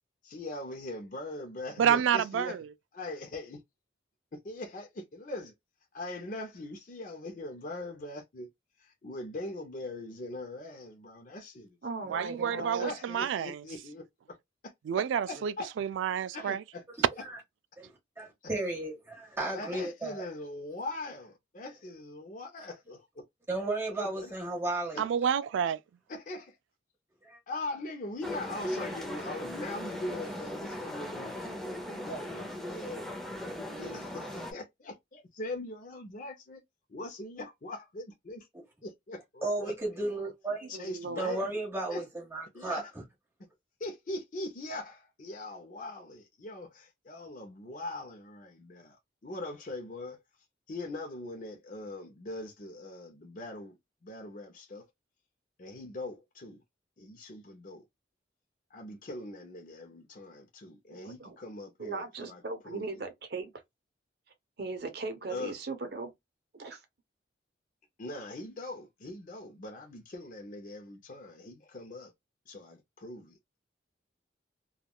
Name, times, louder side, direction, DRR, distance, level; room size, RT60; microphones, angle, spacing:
voice 1, 0.2-2.6 2.9-3.6 4.3-5.5 5.9-8.5 8.8-11.6 12.1-14.4 15.0-15.7 16.3-16.8 19.5-23.2 23.9-24.3 24.9-25.0 26.1-26.6 27.5-33.1 33.8-36.6 36.9-38.5 38.8-39.7 40.1-40.3 40.7-41.4 41.9-42.0 42.5-42.9 43.8-49.0 49.2-50.2 50.7-53.8 54.0-54.8 55.6-56.6 57.0-57.8 58.7-62.9 65.3-65.5 68.0-72.1 72.5-73.4, left 2 dB, 45° left, 0.5 m, -41 dB
voice 2, 1.8-2.7 12.1-13.6 14.9-16.6 25.0-25.8, right 8 dB, 85° right, 0.3 m, -29 dB
voice 3, 11.8-12.9 40.6-41.5 60.9-61.4 61.8-63.5 64.6-66.1 66.6-66.8, right 3 dB, 55° right, 0.7 m, -38 dB
voice 4, 18.2-20.2 22.6-22.7 23.5-25.0 27.2-27.4 39.4-40.7 41.2-42.8, right 2 dB, 15° right, 1.4 m, -34 dB
sound 1, 28.2-34.5, left 1 dB, ahead, 0.6 m, -38 dB
3.5 x 2.2 x 2.3 m
head